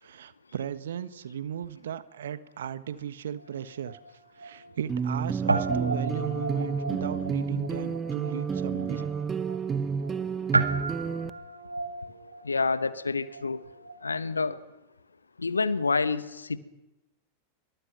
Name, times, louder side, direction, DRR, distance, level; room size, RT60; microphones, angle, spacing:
voice 1, 0.0-4.0 4.4-9.1, right 9 dB, 65° right, 14 dB, 1.4 m, -36 dB
Guitar, 3.4-5.2 5.5-14.1, right 3 dB, 80° right, 2.1 m, -34 dB
sound 1, 4.9-11.3, right 6 dB, 20° right, 1.0 m, -30 dB
voice 2, 12.4-13.6 14.0-14.6 15.4-16.6, left 4 dB, 80° left, 14 dB, 1.4 m, -28 dB
27.5 x 23.5 x 6.0 m, 0.94 s
figure-of-eight pair, 90°, 0 cm